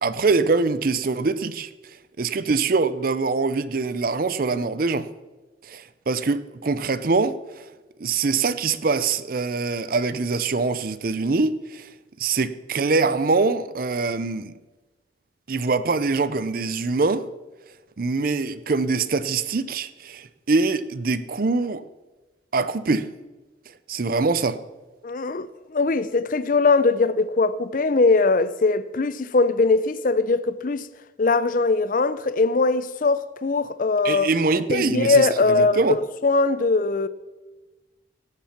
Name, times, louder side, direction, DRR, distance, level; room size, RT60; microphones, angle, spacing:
voice 1, 0.0-1.7 2.2-5.1 5.7-7.7 8.0-11.9 12.2-14.6 15.5-17.3 18.0-21.8 22.5-23.1 23.9-24.6 34.0-36.0, right 4 dB, 50° right, 0.5 m, -23 dB
voice 2, 25.0-25.5 25.7-30.9 31.2-34.3 34.7-36.0 36.2-37.1, left 3 dB, 45° left, 0.5 m, -21 dB
17.5 x 7.3 x 5.7 m
head